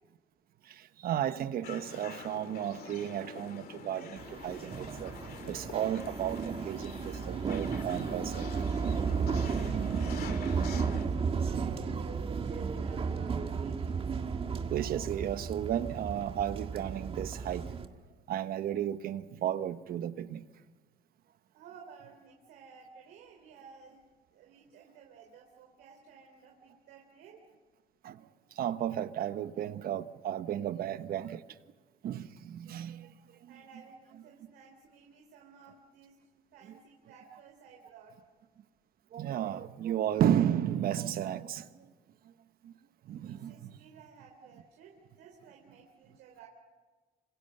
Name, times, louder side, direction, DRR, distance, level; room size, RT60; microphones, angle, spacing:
voice 1, 0.6-5.2 5.5-8.5 8.8-9.1 9.6-10.0 10.5-10.7 14.7-17.7 18.3-20.4 28.0-28.3 28.5-31.4 32.0-33.1 33.4-33.5 39.1-41.8 42.6-42.7 43.0-43.8, right 10 dB, 60° right, 1.2 m, -33 dB
sound 1, 1.6-11.1, left 7 dB, 60° left, 2.4 m, -47 dB
sound 2, 4.2-17.9, right 5 dB, 35° right, 1.7 m, -34 dB
voice 2, 9.6-13.8 21.5-24.0 24.3-27.4 33.0-38.1 43.2-46.5, right 6 dB, 85° right, 3.4 m, -55 dB
26.5 x 26.0 x 6.8 m
cardioid pair, 110°, 17 cm